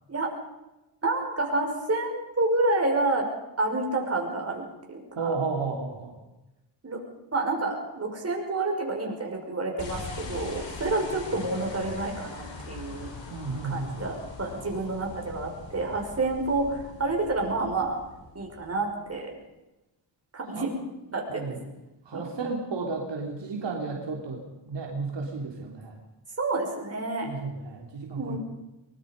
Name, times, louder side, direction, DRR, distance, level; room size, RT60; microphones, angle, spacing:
voice 1, 1.0-3.3 3.6-5.3 6.8-7.0 7.3-13.1 13.6-18.0 18.3-19.3 20.3-20.8 21.1-21.6 22.1-22.3 26.4-27.3 28.2-28.4, right 2 dB, 35° right, 1 dB, 5.8 m, -29 dB
voice 2, 5.2-6.2 13.3-14.0 20.5-20.7 21.3-21.6 22.1-26.0 27.2-28.4, right 4 dB, 70° right, 0 dB, 3.6 m, -33 dB
sound 1, 9.8-19.2, left 3 dB, 75° left, 5.2 m, -42 dB
23.0 x 21.5 x 5.4 m, 0.97 s
wide cardioid pair, 105°, 44 cm